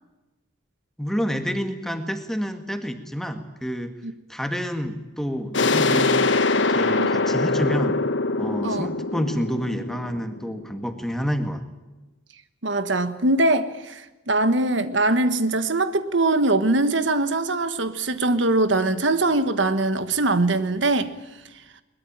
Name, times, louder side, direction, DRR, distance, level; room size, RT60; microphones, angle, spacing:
voice 1, 1.0-3.9 4.3-8.0 8.4-11.6, equal, ahead, 6 dB, 1.9 m, -28 dB
sound 1, 5.5-11.0, left 3 dB, 70° left, 1.3 m, -23 dB
voice 2, 12.6-21.1, right 2 dB, 70° right, 11 dB, 1.4 m, -22 dB
22.5 x 21.0 x 8.9 m, 1.0 s
head